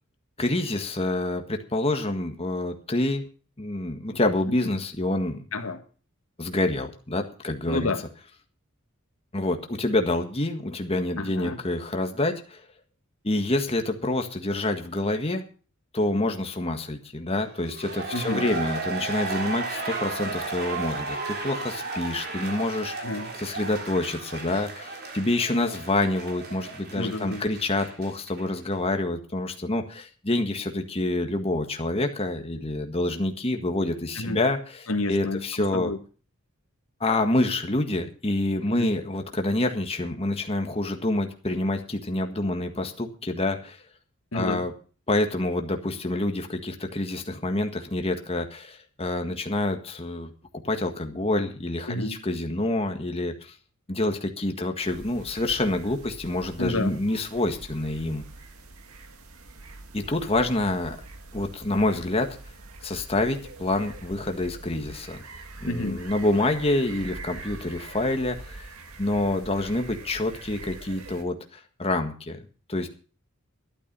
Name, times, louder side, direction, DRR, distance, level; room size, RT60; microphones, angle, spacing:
voice 1, 0.4-3.2 3.6-5.4 6.4-7.9 9.3-12.6 13.2-15.4 15.9-22.9 23.4-35.9 37.0-43.8 44.3-44.7 45.1-50.3 50.6-53.5 53.9-58.2 59.9-61.0 61.3-62.4 62.8-65.2 65.6-68.6 69.0-72.4 72.7-72.9, left 2 dB, 30° left, 1.7 m, -27 dB
voice 2, 7.7-8.0 11.2-11.6 18.1-18.4 23.0-23.3 26.9-27.5 34.2-34.4 34.9-35.4 35.7-36.0 38.7-38.9 44.3-44.6 51.9-52.2 56.6-56.9 65.7-66.0, left 2 dB, 70° left, 1.8 m, -29 dB
sound 1, 17.6-28.4 28.7-28.8, right 4 dB, 50° right, 3.5 m, -34 dB
sound 2, 54.8-71.2, right 2 dB, 85° right, 2.0 m, -44 dB
12.0 x 12.0 x 5.4 m
head